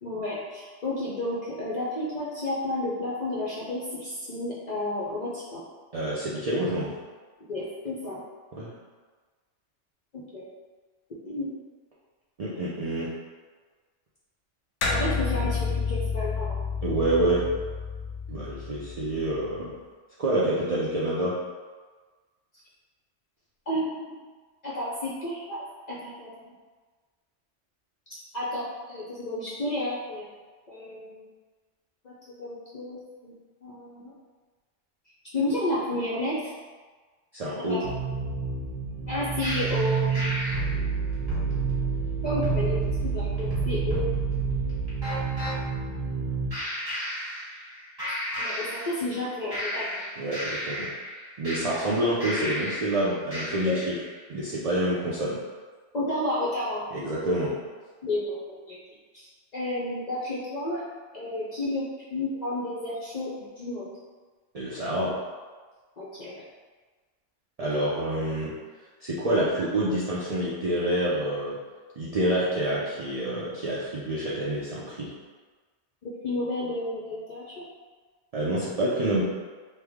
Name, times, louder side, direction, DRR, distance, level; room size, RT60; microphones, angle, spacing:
voice 1, 0.0-5.6 7.5-8.2 10.1-10.4 11.3-11.5 14.9-16.6 23.7-24.2 24.6-26.5 28.3-30.3 30.7-31.3 32.0-33.3 33.6-34.1 35.3-36.5 37.6-37.9 39.1-40.3 42.2-44.1 48.4-49.8 53.6-53.8 55.9-56.8 58.0-58.8 59.1-60.8 61.1-63.9 66.0-66.4 67.6-67.7 76.0-77.6, left 1 dB, 55° left, -7 dB, 0.5 m, -31 dB
voice 2, 5.9-6.9 8.6-8.7 12.4-13.1 16.8-17.5 18.3-19.7 20.2-21.3 37.3-37.8 50.2-50.9 51.4-53.9 54.3-55.4 56.9-57.5 64.5-65.1 67.6-68.5 69.0-71.5 72.0-75.1 78.3-79.2, right 1 dB, 55° right, -8 dB, 0.4 m, -27 dB
sound 1, 14.8-19.6, left 4 dB, 90° left, 0.9 m, -30 dB
sound 2, 37.8-46.5, right 5 dB, 85° right, 1.0 m, -31 dB
sound 3, 39.4-45.5 46.5-47.7 48.0-49.2 49.5-52.9 53.3-53.9, right 2 dB, 20° right, 1.1 m, -31 dB
3.3 x 2.1 x 3.4 m, 1.4 s
omnidirectional pair, 1.2 m